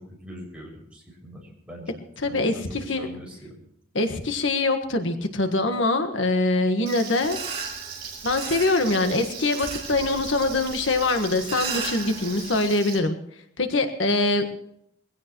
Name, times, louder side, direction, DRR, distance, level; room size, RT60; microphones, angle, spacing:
voice 1, 0.0-3.6, equal, 5° right, -3 dB, 6.4 m, -42 dB
voice 2, 2.2-3.1 3.9-7.4 8.2-13.2 13.6-14.6, left 2 dB, 85° left, 6 dB, 1.5 m, -23 dB
Frying (food), 6.9-13.0, right 6 dB, 50° right, 7.4 m, -39 dB
sound 1, 7.2-12.6, right 5 dB, 30° right, 3.1 m, -36 dB
22.5 x 16.5 x 3.1 m, 0.70 s
head